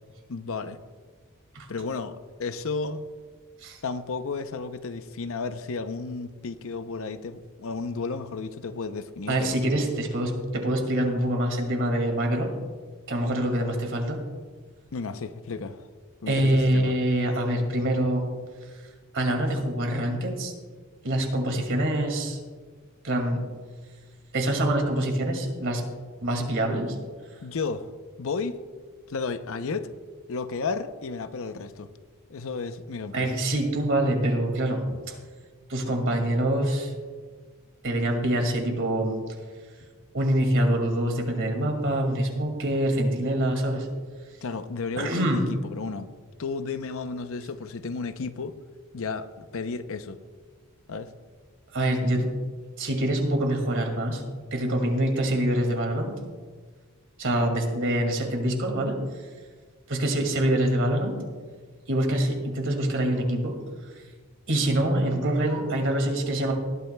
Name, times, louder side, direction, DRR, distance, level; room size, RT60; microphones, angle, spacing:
voice 1, 0.3-0.8 1.7-3.0 3.8-9.6 14.9-15.9 16.2-16.9 27.4-27.9 28.2-28.6 29.1-29.9 30.3-31.9 32.3-33.3 44.4-46.1 46.4-48.6 48.9-50.2 50.9-51.1, left 4 dB, 65° left, 11 dB, 0.6 m, -33 dB
voice 2, 9.3-12.5 13.1-14.2 16.3-18.3 19.1-20.5 21.0-22.4 23.0-23.4 24.3-25.8 26.2-27.0 33.1-34.8 35.7-36.9 37.8-39.2 40.1-43.9 45.0-45.4 51.7-52.3 52.8-54.2 54.5-56.2 57.2-59.0 59.9-61.1 61.9-63.6 64.5-66.5, right 1 dB, 60° right, 3 dB, 2.2 m, -25 dB
19.0 x 12.5 x 2.2 m, 1.5 s
head